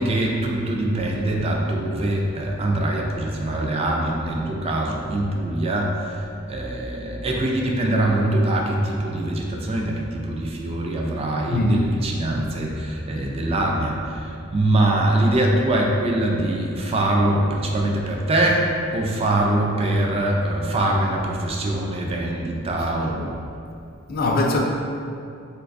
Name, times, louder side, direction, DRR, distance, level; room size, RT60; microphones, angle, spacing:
voice 1, 0.0-23.4, right 1 dB, 30° right, -1 dB, 0.3 m, -23 dB
voice 2, 11.5-11.9 24.1-24.6, left 2 dB, 45° left, 0 dB, 0.3 m, -21 dB
3.9 x 2.3 x 2.5 m, 2.5 s
head